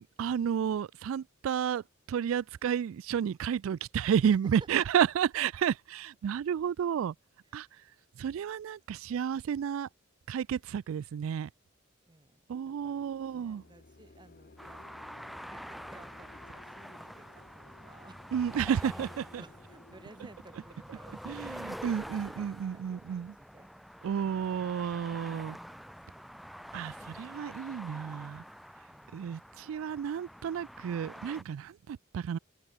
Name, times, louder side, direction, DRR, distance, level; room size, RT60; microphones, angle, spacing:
voice 1, 0.2-7.1 7.5-9.9 10.3-11.5 12.5-13.6 18.3-19.4 20.9-21.0 21.3-23.3 24.0-25.6 26.7-28.4 29.1-32.4, right 8 dB, 80° right, 0.3 m, -31 dB
voice 2, 12.1-13.1 13.3-14.9 15.5-18.5 18.9-23.7 24.6-26.6 28.9-29.2, right 2 dB, 25° right, 1.0 m, -57 dB
sound 1, 12.9-21.9, left 2 dB, 50° left, 1.2 m, -58 dB
sound 2, 14.6-31.4, equal, ahead, 0.7 m, -46 dB
open air
head